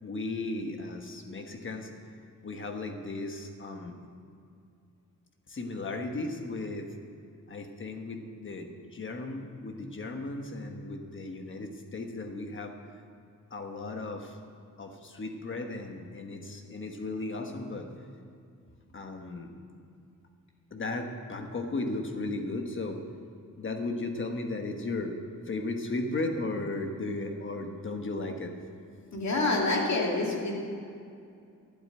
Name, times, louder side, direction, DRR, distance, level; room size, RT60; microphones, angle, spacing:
voice 1, 0.0-1.9 2.4-4.0 5.5-6.9 7.5-12.8 13.5-14.4 14.8-17.9 18.9-19.5 20.7-23.0 23.6-25.1 25.4-28.5, left 2 dB, 35° left, 4 dB, 1.3 m, -35 dB
voice 2, 29.1-30.5, left 2 dB, 55° left, -1 dB, 2.5 m, -27 dB
12.0 x 8.1 x 10.0 m, 2.4 s
wide cardioid pair, 170°, 33 cm